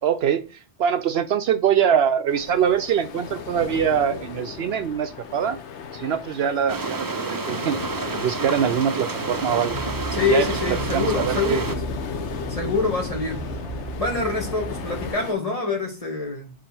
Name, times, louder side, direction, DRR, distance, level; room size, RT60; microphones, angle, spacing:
voice 1, 0.0-5.6 5.9-7.8 8.2-9.8 10.3-11.6, right 8 dB, 70° right, 10 dB, 0.8 m, -23 dB
sound 1, 2.3-15.3, left 7 dB, 80° left, 1.1 m, -36 dB
sound 2, 6.7-11.8, right 3 dB, 30° right, 0.4 m, -29 dB
sound 3, 9.7-15.1, right 2 dB, 10° left, 2.6 m, -34 dB
voice 2, 10.1-11.6 12.5-13.4 13.8-16.5, left 4 dB, 30° left, 0 dB, 2.1 m, -25 dB
5.3 x 4.9 x 6.0 m, 0.34 s
omnidirectional pair, 1.2 m